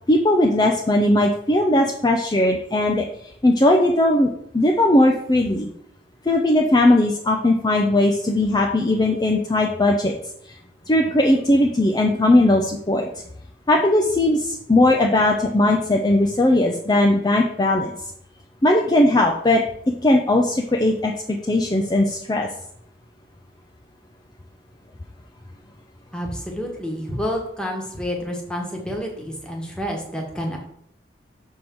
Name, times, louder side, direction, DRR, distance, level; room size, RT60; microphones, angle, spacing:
voice 1, 0.1-3.0 3.4-5.7 6.3-10.1 10.9-13.1 13.7-17.9 18.6-22.5, left 1 dB, 20° left, 1 dB, 0.5 m, -18 dB
voice 2, 26.1-30.6, equal, 5° left, 0 dB, 1.3 m, -29 dB
6.5 x 3.6 x 6.0 m, 0.71 s
head